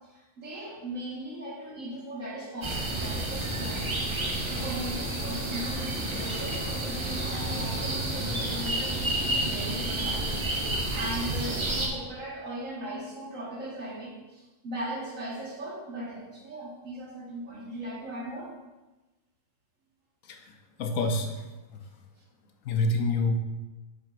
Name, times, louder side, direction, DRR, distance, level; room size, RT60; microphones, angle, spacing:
voice 1, 0.1-4.0 4.5-10.3 10.6-18.5, right 1 dB, 70° right, -5 dB, 2.1 m, -38 dB
sound 1, 2.6-11.9, right 1 dB, 25° right, 0.7 m, -30 dB
voice 2, 20.8-21.3 21.7-21.8 22.6-23.4, left 2 dB, 75° left, 4 dB, 1.1 m, -26 dB
7.7 x 6.1 x 2.5 m, 1.1 s
omnidirectional pair, 1.4 m